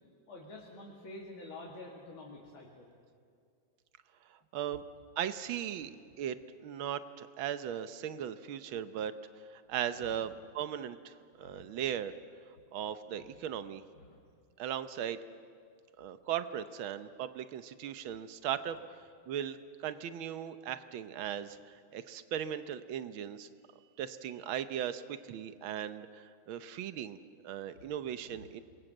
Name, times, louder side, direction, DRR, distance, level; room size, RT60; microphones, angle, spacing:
voice 1, 0.3-2.9 5.8-5.9 10.0-10.3 11.4-11.7 13.1-13.3 13.9-14.2 27.7-27.9 28.2-28.5, left 2 dB, 85° left, -3 dB, 3.5 m, -49 dB
voice 2, 4.3-4.8 5.2-5.9 6.2-6.4 6.6-9.1 9.5-12.1 12.7-13.8 14.6-15.2 16.0-18.8 19.3-23.5 24.0-27.2 27.4-28.6, right 10 dB, 80° right, 12 dB, 1.7 m, -38 dB
27.0 x 22.5 x 7.8 m, 2.2 s
omnidirectional pair, 2.2 m